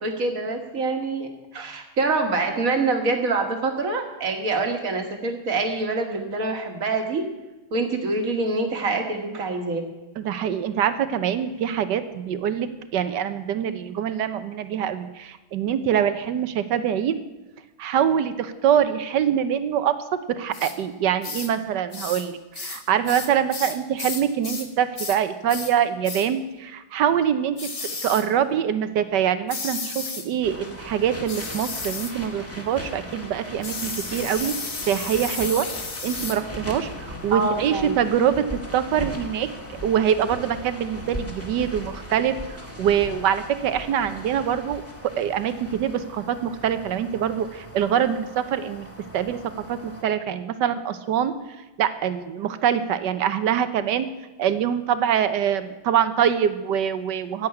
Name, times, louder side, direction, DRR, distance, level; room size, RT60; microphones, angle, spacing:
voice 1, 0.0-1.3 1.5-7.3 7.7-9.8 37.3-37.9, right 3 dB, 50° right, 5 dB, 1.8 m, -25 dB
voice 2, 10.2-17.2 17.8-27.6 28.0-34.6 34.9-35.7 36.0-39.5 39.8-48.9 49.1-49.4 49.7-51.3 51.8-54.1 54.4-57.5, right 9 dB, 70° right, 12 dB, 1.3 m, -24 dB
sound 1, 20.5-20.8 21.2-21.5 21.9-22.3 22.5-24.7 25.0-25.2 25.5-25.8 26.0-26.3 27.6-28.3 29.5-30.3 31.3-32.2 33.6-36.4, left 3 dB, 30° left, 0.6 m, -33 dB
sound 2, 30.4-50.0, equal, 10° left, 1.4 m, -39 dB
10.5 x 8.2 x 9.7 m, 1.1 s
omnidirectional pair, 2.0 m